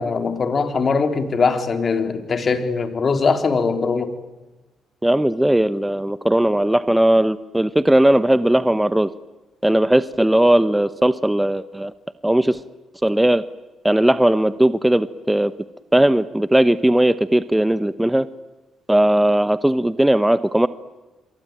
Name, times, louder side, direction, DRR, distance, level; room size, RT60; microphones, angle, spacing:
voice 1, 0.0-4.1, left 4 dB, 40° left, 8 dB, 3.7 m, -21 dB
voice 2, 5.0-9.1 9.6-11.9 12.2-12.6 13.0-13.4 13.8-15.5 15.9-18.3 18.9-20.7, right 1 dB, 5° right, 14 dB, 1.0 m, -17 dB
28.5 x 23.0 x 9.0 m, 1.1 s
cardioid pair, 90°, 0 cm